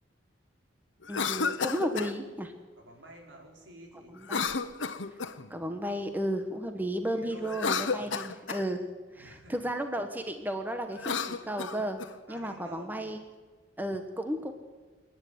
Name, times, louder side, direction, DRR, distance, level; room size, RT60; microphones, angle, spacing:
Cough, 1.0-2.1 4.2-5.5 7.4-8.7 10.9-12.1, left 5 dB, 85° left, 1.1 m, -32 dB
voice 1, 1.1-2.5 4.1-4.5 5.5-8.8 9.1-12.0 12.3-13.2 13.8-14.5, equal, 10° right, 6 dB, 1.2 m, -33 dB
voice 2, 2.8-4.1 7.1-8.0 9.1-9.5 12.3-12.9, equal, 80° right, 1 dB, 5.5 m, -50 dB
27.5 x 10.5 x 9.4 m, 1.4 s
head